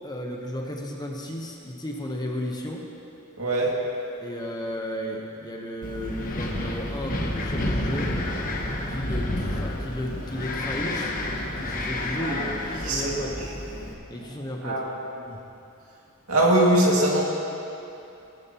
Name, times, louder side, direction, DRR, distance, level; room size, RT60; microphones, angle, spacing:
voice 1, 0.0-2.8 4.2-8.1 8.9-11.1 11.6-13.3 14.1-14.8, left 1 dB, 20° left, 0 dB, 1.0 m, -33 dB
voice 2, 3.4-3.7 12.2-12.5 12.8-13.5 14.6-15.3 16.3-17.2, right 1 dB, 75° right, -3 dB, 2.3 m, -23 dB
Wind, 5.8-13.9, left 1 dB, 40° left, 1.2 m, -30 dB
20.0 x 10.5 x 3.0 m, 2.8 s
head